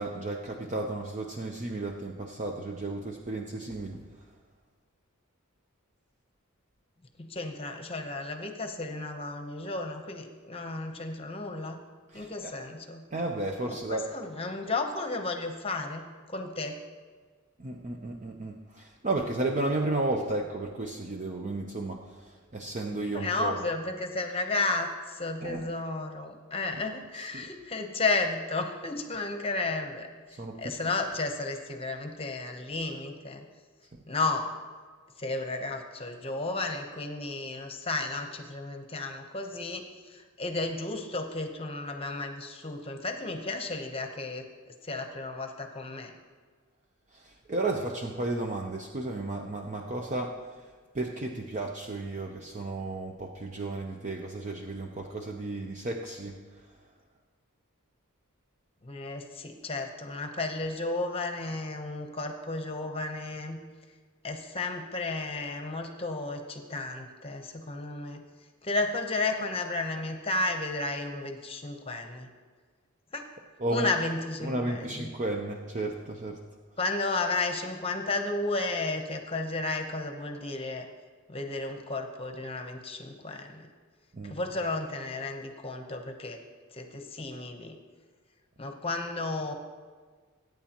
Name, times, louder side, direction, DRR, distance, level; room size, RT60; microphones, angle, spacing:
voice 1, 0.0-4.1 12.1-12.5 13.1-14.0 17.6-23.6 25.4-25.6 27.2-27.5 30.3-30.7 47.1-50.4 50.9-56.4 73.6-73.9 74.4-76.4 84.1-84.4, right 2 dB, 35° right, 2 dB, 0.7 m, -33 dB
voice 2, 7.2-11.8 12.1-13.0 13.6-16.0 16.3-16.8 23.1-33.4 34.1-34.6 35.2-46.1 58.8-63.6 64.2-68.2 68.6-72.3 73.1-73.2 73.7-75.1 76.8-80.9 81.3-83.7 84.2-86.4 86.7-87.8 88.6-89.5, left 3 dB, 25° left, 5 dB, 0.9 m, -33 dB
21.0 x 9.3 x 3.0 m, 1.5 s
head